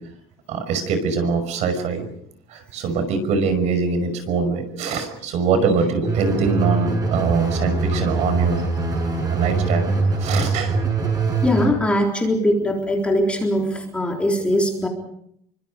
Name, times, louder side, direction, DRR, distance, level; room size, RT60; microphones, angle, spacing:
voice 1, 0.5-2.1 2.5-8.6 9.3-9.9 10.2-10.7, right 5 dB, 50° right, 9 dB, 5.6 m, -23 dB
sound 1, 6.0-11.7, right 3 dB, 25° right, 7.2 m, -22 dB
voice 2, 11.4-14.9, left 1 dB, 10° left, 1 dB, 3.9 m, -21 dB
29.5 x 24.5 x 5.2 m, 0.71 s
cardioid pair, 175°, 14 cm